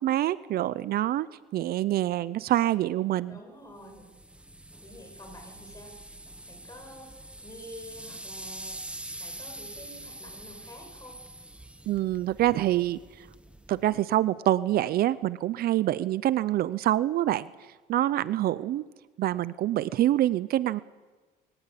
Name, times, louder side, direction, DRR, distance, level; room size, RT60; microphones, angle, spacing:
voice 1, 0.0-3.4 11.9-13.0 13.7-17.5 17.9-18.9 19.2-20.8, right 13 dB, 65° right, 17 dB, 0.6 m, -26 dB
voice 2, 3.3-4.1 4.8-6.0 6.5-8.8 9.2-11.2, equal, 20° left, 3 dB, 7.8 m, -48 dB
sound 1, 3.8-14.0, right 1 dB, 5° right, 1.4 m, -45 dB
22.5 x 19.0 x 8.4 m, 1.3 s
cardioid pair, 110°, 17 cm